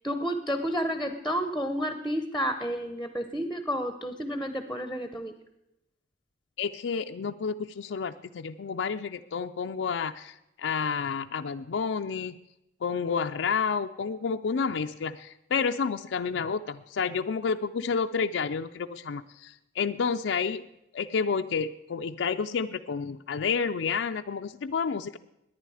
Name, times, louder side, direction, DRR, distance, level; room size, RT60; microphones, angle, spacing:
voice 1, 0.0-5.3, equal, ahead, 8 dB, 0.7 m, -31 dB
voice 2, 6.6-12.4 12.8-20.6 20.9-25.2, left 5 dB, 85° left, 6 dB, 0.4 m, -30 dB
18.5 x 10.5 x 4.9 m, 0.87 s
head